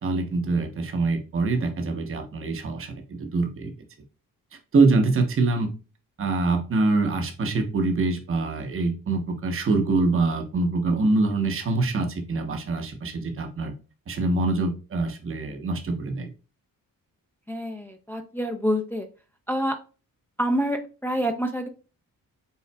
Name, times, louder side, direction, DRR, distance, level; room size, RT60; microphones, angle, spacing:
voice 1, 0.0-3.7 4.7-5.7 6.2-13.7 14.1-16.3, right 3 dB, 40° right, 5 dB, 0.8 m, -24 dB
voice 2, 17.5-19.1 19.5-19.8 20.4-21.7, equal, 5° left, 4 dB, 0.4 m, -27 dB
5.5 x 3.8 x 2.2 m, 0.33 s
wide cardioid pair, 130°, 34 cm